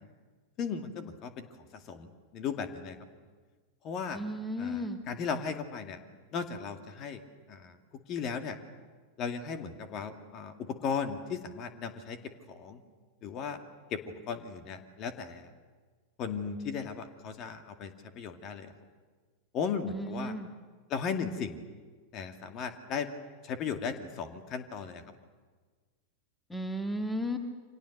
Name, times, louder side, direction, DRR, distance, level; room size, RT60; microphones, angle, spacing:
voice 1, 0.6-1.5 1.7-3.0 3.8-4.2 4.6-6.0 6.3-7.2 7.5-7.8 8.1-8.6 9.2-12.2 12.5-12.8 13.2-13.6 13.9-15.5 16.2-18.7 19.5-20.4 20.9-21.6 22.1-23.1 23.4-25.0, left 6 dB, 35° left, 7 dB, 2.3 m, -36 dB
voice 2, 4.1-5.0 19.9-20.5 26.5-27.4, equal, 5° left, 6 dB, 1.9 m, -34 dB
29.5 x 26.0 x 6.7 m, 1.4 s
figure-of-eight pair, 90°, 0 cm